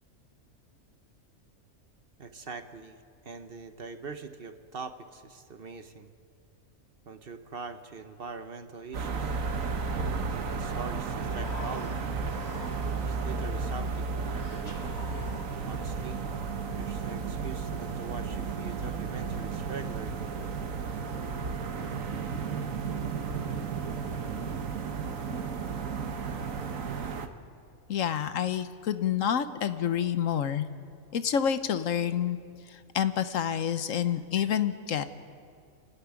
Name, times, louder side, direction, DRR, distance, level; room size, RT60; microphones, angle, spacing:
voice 1, 2.2-3.0 3.2-6.1 7.0-9.4 10.3-12.1 13.0-14.9 15.7-16.2 16.8-20.3, right 4 dB, 45° right, 9 dB, 1.1 m, -43 dB
sound 1, 8.9-27.3, right 5 dB, 75° right, 1.5 m, -33 dB
Human voice, 11.2-13.2 14.1-15.8, left 2 dB, 35° left, 2.1 m, -46 dB
voice 2, 27.9-30.6 31.1-32.4 32.7-35.0, left 9 dB, 70° left, 11 dB, 1.2 m, -28 dB
27.5 x 13.0 x 9.6 m, 2.2 s
omnidirectional pair, 1.4 m